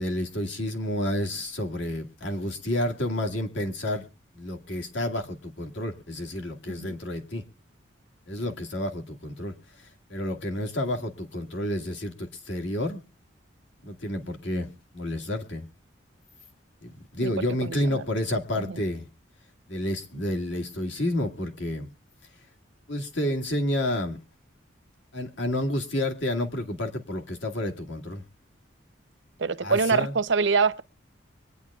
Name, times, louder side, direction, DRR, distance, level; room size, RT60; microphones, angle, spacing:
voice 1, 0.0-4.0 4.4-7.4 8.3-9.5 10.1-13.0 13.8-15.7 16.8-19.1 19.7-21.9 22.9-24.2 25.1-28.2 29.6-30.2, left 1 dB, 70° left, 1.8 m, -30 dB
voice 2, 17.6-18.0 18.6-18.8 29.4-30.8, right 5 dB, 65° right, 0.7 m, -25 dB
24.0 x 9.7 x 2.3 m
head